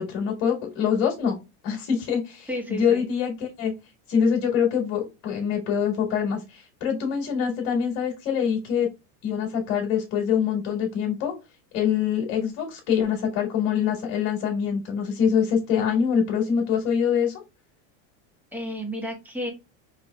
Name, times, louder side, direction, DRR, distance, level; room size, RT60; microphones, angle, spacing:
voice 1, 0.0-1.4 1.6-3.7 4.1-8.9 9.2-11.3 11.7-17.4, left 7 dB, 60° left, 0 dB, 1.7 m, -24 dB
voice 2, 2.5-3.0 18.5-19.5, equal, 5° right, 1 dB, 1.2 m, -32 dB
4.5 x 3.0 x 2.2 m, 0.27 s
supercardioid pair, 130°, 38 cm